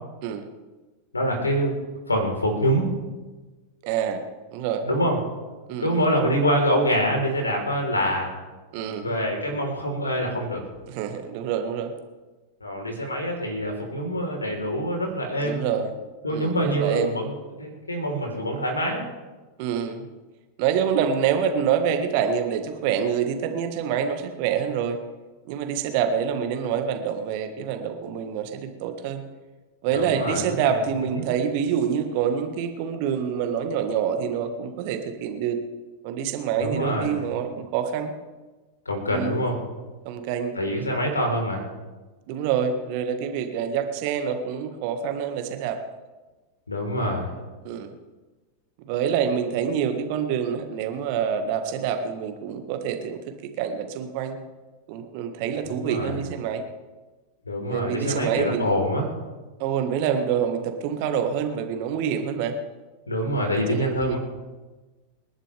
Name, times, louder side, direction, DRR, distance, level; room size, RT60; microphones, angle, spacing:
voice 1, 1.1-1.7 2.1-2.9 4.8-5.2 5.8-8.3 9.0-10.6 12.6-15.6 16.2-17.3 17.6-19.0 29.9-30.8 31.1-31.2 36.6-37.2 38.9-39.6 40.6-41.6 46.7-47.3 55.7-56.2 57.5-59.1 63.1-64.2, equal, 80° left, 2 dB, 4.1 m, -25 dB
voice 2, 3.8-4.2 4.5-4.9 5.7-6.2 8.7-9.2 10.9-11.9 15.4-15.9 16.3-17.2 19.6-20.1 20.6-25.0 25.5-29.2 29.8-35.6 36.0-38.1 39.1-39.4 40.0-40.5 42.3-45.8 47.6-47.9 48.8-53.2 53.6-54.4 54.9-56.6 57.7-58.7 59.6-62.5 63.5-64.2, right 8 dB, 45° right, 6 dB, 1.7 m, -26 dB
27.5 x 11.0 x 3.5 m, 1.2 s
figure-of-eight pair, 90°, 0 cm